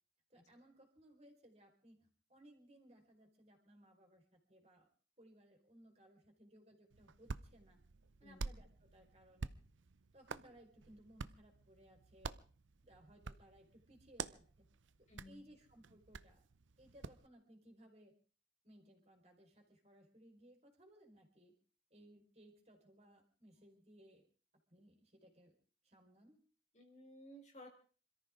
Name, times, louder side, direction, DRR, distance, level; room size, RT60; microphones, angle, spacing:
voice 1, 0.3-4.9 5.2-7.8 8.2-9.5 10.1-12.4 12.8-14.7 15.0-16.4 16.8-18.1 18.6-21.5 21.9-24.2 24.7-25.6 25.8-26.4, right 1 dB, 35° right, 2 dB, 4.4 m, -63 dB
Hands, 6.9-17.3, right 4 dB, 80° right, 0.7 m, -50 dB
voice 2, 15.1-15.4 26.7-27.7, left 1 dB, 40° left, 2 dB, 3.5 m, -56 dB
27.0 x 14.0 x 3.7 m, 0.39 s
head